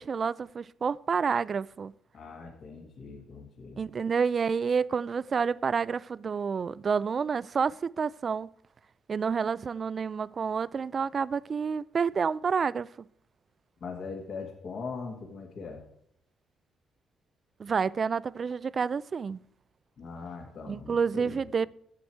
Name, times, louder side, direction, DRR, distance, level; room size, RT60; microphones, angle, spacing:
voice 1, 0.0-1.9 3.8-8.5 9.1-12.9 17.6-19.4 20.7-21.7, right 6 dB, 45° right, 0.3 m, -29 dB
voice 2, 2.1-3.8 13.8-15.8 20.0-21.4, left 4 dB, 60° left, 1.9 m, -41 dB
9.6 x 7.9 x 4.5 m
cardioid pair, 90°, 0 cm